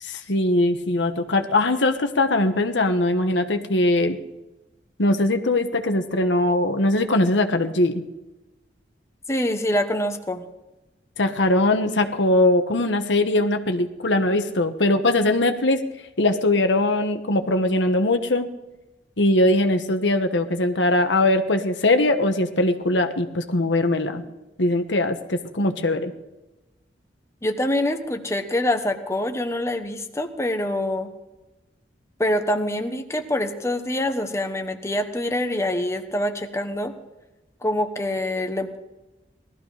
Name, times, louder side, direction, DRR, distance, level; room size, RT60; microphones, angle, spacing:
voice 1, 0.0-4.2 5.0-8.0 11.2-15.8 16.2-18.5 19.2-24.2 24.6-26.1, left 2 dB, 90° left, 7 dB, 1.3 m, -21 dB
voice 2, 9.3-10.5 27.4-31.1 32.2-36.9 37.6-38.8, left 1 dB, 15° left, 6 dB, 1.2 m, -25 dB
18.5 x 13.5 x 5.0 m, 1.0 s
head